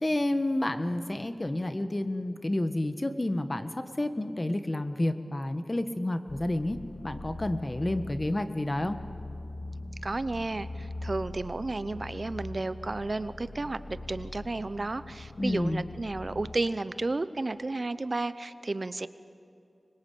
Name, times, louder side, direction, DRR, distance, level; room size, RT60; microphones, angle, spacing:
voice 1, 0.0-6.8 7.0-9.0 15.4-15.8, left 1 dB, 30° left, 9 dB, 1.5 m, -30 dB
sound 1, 6.3-16.6, left 2 dB, 65° left, 1.9 m, -42 dB
voice 2, 10.0-19.1, right 2 dB, 50° right, 14 dB, 0.7 m, -32 dB
25.0 x 21.5 x 8.7 m, 2.7 s
wide cardioid pair, 55°, 0 cm